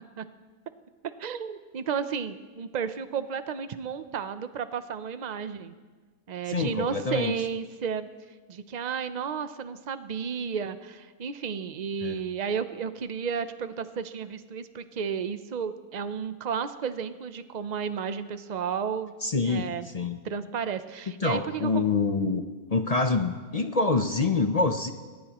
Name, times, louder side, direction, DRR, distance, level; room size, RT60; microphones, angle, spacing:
voice 1, 1.2-5.7 6.3-8.1 8.5-19.1 19.4-19.9 20.2-21.8, right 6 dB, 70° right, 11 dB, 0.4 m, -32 dB
voice 2, 6.5-7.3 12.0-12.2 19.2-20.2 21.1-22.4 22.7-24.9, left 3 dB, 50° left, 7 dB, 0.4 m, -26 dB
22.0 x 19.0 x 3.0 m, 1.4 s
omnidirectional pair, 1.6 m